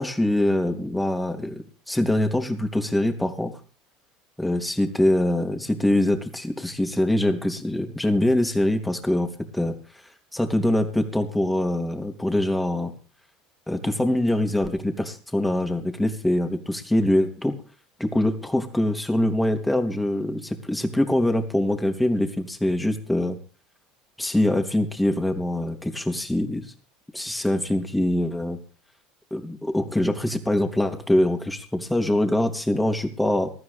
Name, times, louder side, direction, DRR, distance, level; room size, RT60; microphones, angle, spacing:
voice 1, 0.0-3.6 4.4-9.7 10.3-12.9 13.7-17.5 18.0-23.4 24.2-26.7 27.1-28.6 29.3-33.5, left 1 dB, 5° left, 5 dB, 3.2 m, -24 dB
20.0 x 14.0 x 3.6 m, 0.39 s
hypercardioid pair, 75°, 0 cm